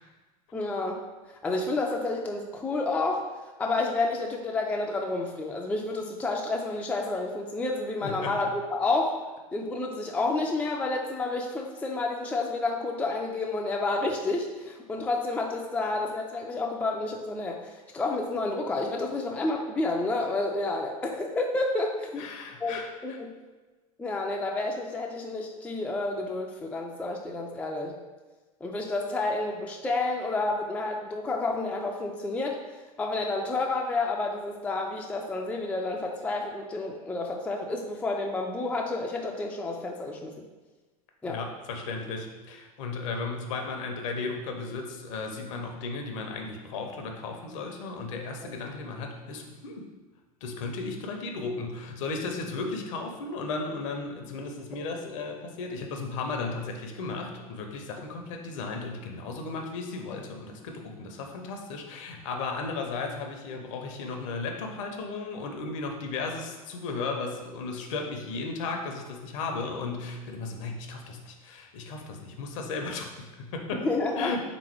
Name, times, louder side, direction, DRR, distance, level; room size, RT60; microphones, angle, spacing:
voice 1, 0.5-1.0 1.4-3.3 3.6-9.2 9.5-22.3 22.6-23.3 24.0-27.9 28.6-32.6 33.0-40.3 41.2-41.4 48.4-48.5 73.7-74.3, left 2 dB, 5° left, 0 dB, 0.4 m, -30 dB
voice 2, 8.0-8.4 22.2-23.2 41.3-49.9 50.4-73.9 74.2-74.4, left 3 dB, 55° left, 3 dB, 0.7 m, -35 dB
3.7 x 3.1 x 4.5 m, 1.2 s
figure-of-eight pair, 85°, 19 cm